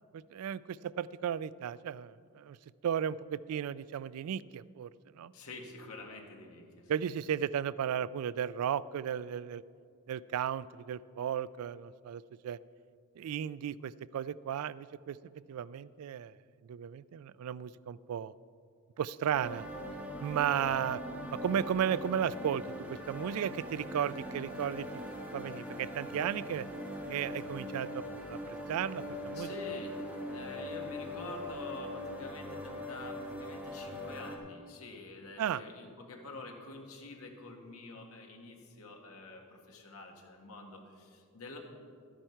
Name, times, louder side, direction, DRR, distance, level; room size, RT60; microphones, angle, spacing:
voice 1, 0.3-2.6 2.8-4.9 5.1-5.3 6.9-9.6 10.1-12.6 13.2-15.2 15.5-16.3 16.7-18.3 19.0-19.7 20.2-21.0 21.3-24.9 25.3-26.7 27.1-29.5 35.4-35.6, right 9 dB, 80° right, 19 dB, 0.3 m, -34 dB
voice 2, 5.3-6.9 29.3-41.6, left 3 dB, 80° left, 1 dB, 1.6 m, -47 dB
sound 1, 19.3-34.4, left 1 dB, 5° right, 1.1 m, -41 dB
12.5 x 10.5 x 4.5 m, 2.2 s
head